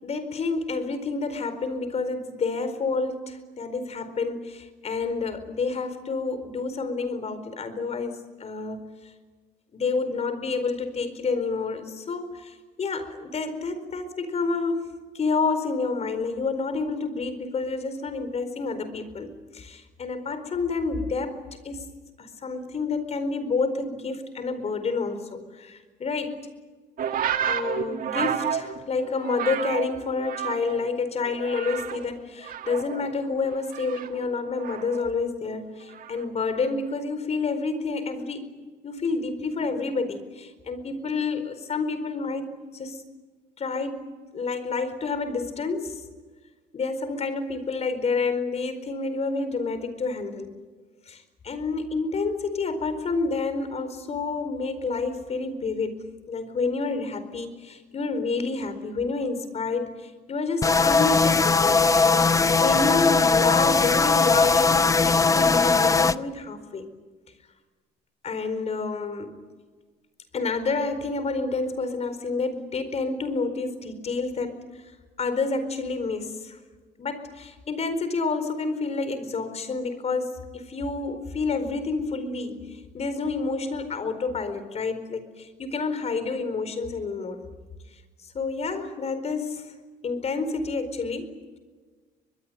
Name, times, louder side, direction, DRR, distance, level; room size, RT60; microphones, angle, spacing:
voice 1, 0.0-8.8 9.7-21.4 21.6-21.9 22.2-26.4 27.5-42.5 42.7-43.0 43.6-44.0 44.3-46.0 46.7-50.5 51.1-66.9 68.2-69.3 70.3-74.5 75.2-76.6 77.0-87.5 88.2-89.6 90.0-91.3, left 4 dB, 40° left, 11 dB, 4.6 m, -29 dB
sound 1, 27.0-30.9 31.2-32.1 32.4-35.1 35.9-36.3, right 9 dB, 55° right, 2.1 m, -31 dB
sound 2, 60.6-66.1, left 4 dB, 20° left, 0.8 m, -19 dB
24.0 x 22.0 x 9.3 m, 1.4 s
cardioid pair, 110°, 17 cm